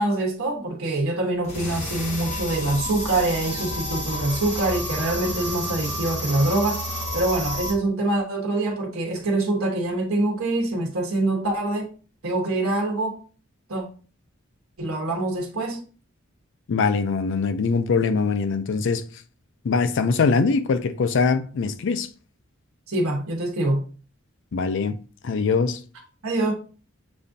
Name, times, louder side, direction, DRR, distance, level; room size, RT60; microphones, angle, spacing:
voice 1, 0.0-6.8 7.1-11.9 12.2-13.2 13.7-13.8 14.8-15.8 22.9-23.8 26.2-26.5, right 2 dB, 75° right, 1.3 m, -24 dB
sound 1, 1.4-7.7, equal, 30° left, 1.3 m, -30 dB
voice 2, 16.7-19.0 19.6-22.1 24.5-25.0 25.2-25.8, left 4 dB, 60° left, 0.4 m, -22 dB
6.8 x 2.5 x 2.6 m
head